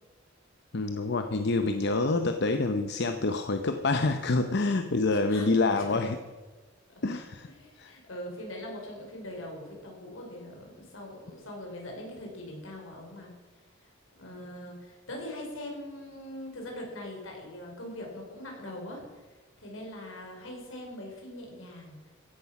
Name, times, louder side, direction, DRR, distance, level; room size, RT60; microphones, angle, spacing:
voice 1, 0.7-6.2 7.0-7.5 7.8-7.9, left 3 dB, 55° left, 7 dB, 0.8 m, -27 dB
voice 2, 5.1-6.1 6.9-7.2 7.4-13.3 14.2-19.2 19.6-22.0, left 1 dB, 80° left, 0 dB, 5.2 m, -42 dB
15.5 x 10.5 x 6.0 m, 1.3 s
head